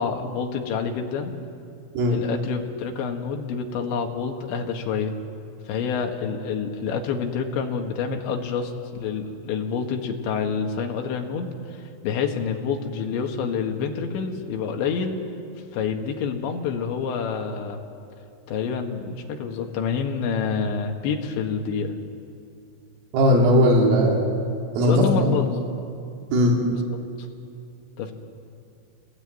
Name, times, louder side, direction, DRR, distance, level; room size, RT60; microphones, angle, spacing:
voice 1, 0.0-1.3 2.1-5.1 5.7-15.2 15.7-17.8 18.5-21.9 24.8-25.6 26.7-26.8 28.0-28.1, left 6 dB, 70° left, 3 dB, 3.8 m, -27 dB
voice 2, 23.1-24.2 24.8-25.3 26.3-26.6, equal, 80° right, -2 dB, 6.1 m, -18 dB
29.5 x 19.5 x 9.1 m, 2.5 s
omnidirectional pair, 5.9 m